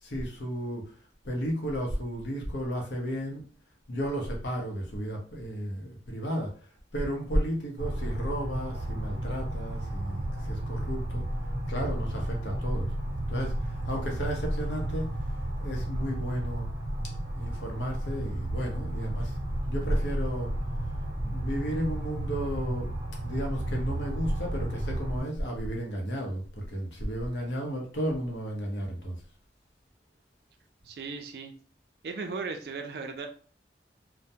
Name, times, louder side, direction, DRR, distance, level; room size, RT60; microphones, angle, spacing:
voice 1, 0.0-0.9 1.2-3.4 3.9-6.5 6.9-11.2 11.7-12.9 13.3-15.1 15.6-16.7 17.4-19.4 19.7-20.5 21.2-22.9 23.2-29.2, equal, 85° left, 1 dB, 0.7 m, -33 dB
sound 1, 7.8-25.2, right 1 dB, 40° right, 0.7 m, -33 dB
voice 2, 30.8-31.5 32.0-33.3, right 4 dB, 60° right, 5 dB, 0.4 m, -36 dB
2.2 x 2.1 x 2.7 m, 0.41 s
head